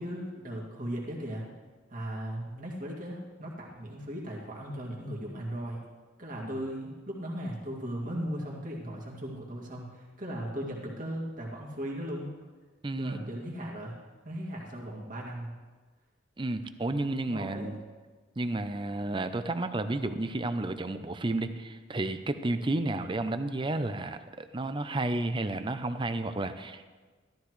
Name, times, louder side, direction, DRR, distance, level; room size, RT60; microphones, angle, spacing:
voice 1, 0.0-1.5 1.9-5.8 6.2-12.4 13.0-14.0 14.2-15.5 17.3-17.7, equal, 45° right, -3 dB, 2.3 m, -37 dB
voice 2, 12.8-13.3 16.4-17.8 18.4-26.9, right 2 dB, 25° right, 10 dB, 0.6 m, -32 dB
14.0 x 13.0 x 3.2 m, 1.4 s
head